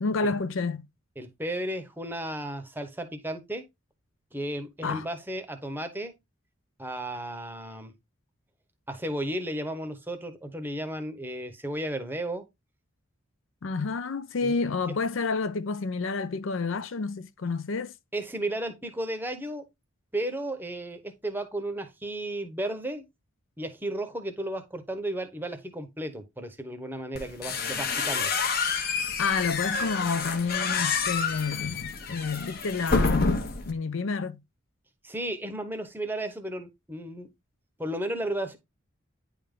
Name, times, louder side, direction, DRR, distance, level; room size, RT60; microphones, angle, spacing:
voice 1, 0.0-0.9 4.8-5.0 13.6-17.9 29.2-34.4, left 4 dB, 65° left, 0.5 m, -29 dB
voice 2, 1.2-3.6 4.3-6.1 6.8-7.9 8.9-12.4 14.4-14.5 18.1-19.6 20.1-23.0 23.6-28.3 35.0-37.3 37.8-38.6, right 1 dB, 10° right, 0.8 m, -34 dB
sound 1, 27.1-33.7, left 4 dB, 45° left, 0.8 m, -28 dB
9.6 x 3.5 x 3.6 m
head